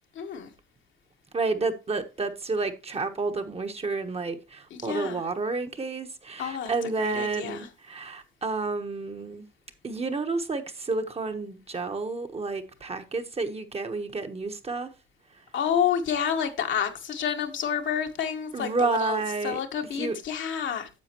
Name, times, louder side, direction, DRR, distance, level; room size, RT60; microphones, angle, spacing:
voice 1, 0.1-0.5 4.7-5.2 6.4-6.7 7.0-7.7 15.5-19.2 19.4-20.9, left 8 dB, 70° left, 1.4 m, -29 dB
voice 2, 1.3-9.5 9.8-14.9 18.5-19.6 19.9-20.2, right 3 dB, 30° right, 1.1 m, -30 dB
9.7 x 7.1 x 3.0 m
cardioid pair, 90°, 20 cm